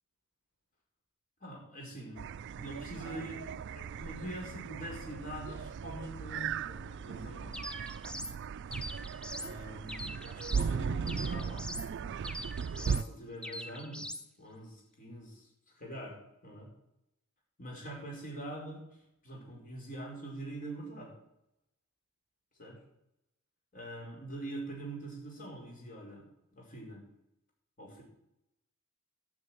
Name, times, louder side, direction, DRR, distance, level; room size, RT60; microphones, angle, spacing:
voice 1, 1.4-2.3 2.5-7.6 9.3-11.7 12.8-14.1 14.4-15.5 15.8-16.2 16.4-16.7 17.6-18.8 19.2-21.1 22.6-22.8 23.7-26.3 26.5-27.0 27.8-28.0, right 1 dB, 40° left, -1 dB, 5.1 m, -44 dB
sound 1, 2.2-13.0, right 6 dB, 60° right, 0.4 m, -37 dB
sound 2, 7.5-8.4 8.7-9.5 9.9-10.7 11.1-11.9 12.2-13.1 13.4-14.3, equal, 5° left, 0.7 m, -42 dB
13.0 x 6.7 x 8.9 m, 0.83 s
head